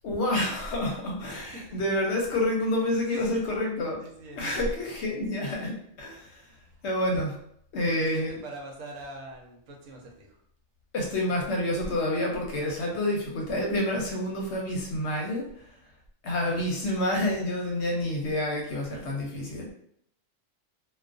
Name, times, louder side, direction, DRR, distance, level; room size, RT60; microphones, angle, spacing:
voice 1, 0.0-4.0 4.4-6.5 6.8-7.4 7.7-8.4 10.9-15.6 16.2-19.7, left 1 dB, 65° left, -1 dB, 0.8 m, -28 dB
voice 2, 1.3-1.8 2.6-3.6 4.0-4.9 6.6-6.9 7.8-10.4, right 2 dB, 80° right, 0 dB, 1.0 m, -44 dB
2.3 x 2.2 x 2.4 m, 0.69 s
omnidirectional pair, 1.4 m